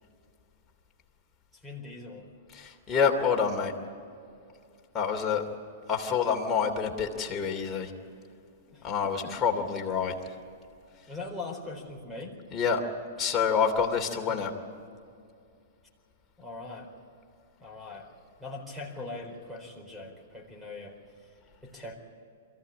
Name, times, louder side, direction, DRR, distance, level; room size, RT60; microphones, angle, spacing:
voice 1, 1.6-2.3 8.7-8.9 9.2-9.4 11.1-12.4 14.3-14.5 16.4-16.9 17.6-18.1 18.4-21.0 21.6-22.0, left 3 dB, 5° right, 1 dB, 4.3 m, -41 dB
voice 2, 2.5-3.7 4.9-5.4 5.9-7.9 8.8-10.1 12.5-12.8 13.2-14.5, left 6 dB, 20° left, 1 dB, 2.8 m, -27 dB
23.0 x 15.0 x 8.7 m, 2.4 s
hypercardioid pair, 120°, 0 cm